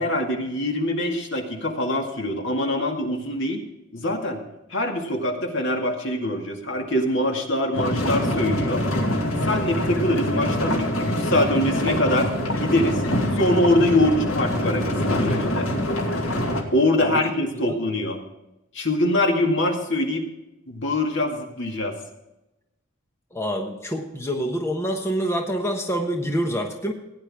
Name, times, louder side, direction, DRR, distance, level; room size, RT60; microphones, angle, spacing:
voice 1, 0.0-3.6 3.9-4.4 4.7-8.8 9.4-12.3 12.6-13.0 13.3-15.7 16.7-18.2 18.7-20.2 20.7-22.0, left 1 dB, 60° left, 2 dB, 2.2 m, -23 dB
sound 1, 7.7-16.6, left 1 dB, 85° left, 2.3 m, -24 dB
voice 2, 17.0-17.3 17.6-17.8 23.3-26.9, equal, 15° left, 2 dB, 1.1 m, -26 dB
16.5 x 9.9 x 3.6 m, 0.95 s
head